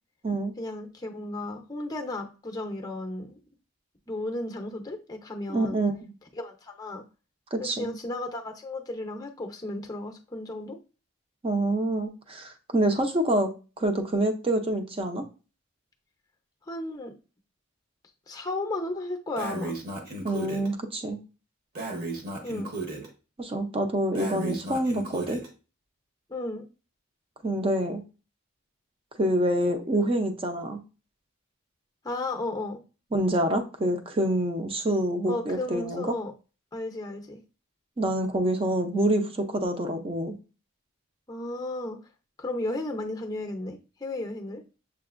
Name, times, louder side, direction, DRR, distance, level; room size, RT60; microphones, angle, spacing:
voice 1, 0.6-3.4 4.1-5.8 6.3-7.0 7.6-10.8 16.7-17.1 18.3-19.8 22.4-22.7 26.3-26.6 32.0-32.8 35.3-36.3 36.7-37.4 41.3-42.0 42.4-44.6, left 2 dB, 15° left, 3 dB, 0.6 m, -34 dB
voice 2, 5.5-5.9 7.5-7.9 11.4-13.5 13.8-15.2 20.2-21.2 23.4-25.4 27.4-28.0 29.2-30.8 33.1-36.1 38.0-40.4, right 1 dB, 25° right, 6 dB, 0.6 m, -26 dB
Breathing, 19.4-20.7 21.7-23.1 24.1-25.5, right 2 dB, 40° right, 1.0 m, -34 dB
6.8 x 2.6 x 2.5 m, 0.33 s
head